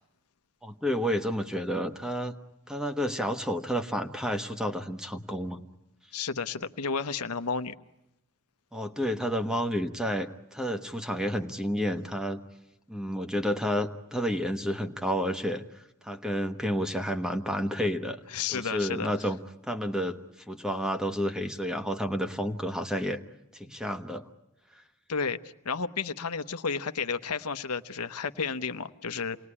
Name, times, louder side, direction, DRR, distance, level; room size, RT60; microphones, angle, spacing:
voice 1, 0.6-2.4 2.7-5.6 8.7-12.4 12.9-15.6 16.0-18.2 18.5-19.4 19.7-20.2 20.5-23.2 23.5-24.2, equal, 5° right, 7 dB, 1.2 m, -30 dB
voice 2, 6.1-7.7 18.3-19.1 25.1-25.4 25.6-29.4, left 5 dB, 90° left, 10 dB, 1.0 m, -32 dB
28.5 x 20.0 x 9.8 m, 0.89 s
head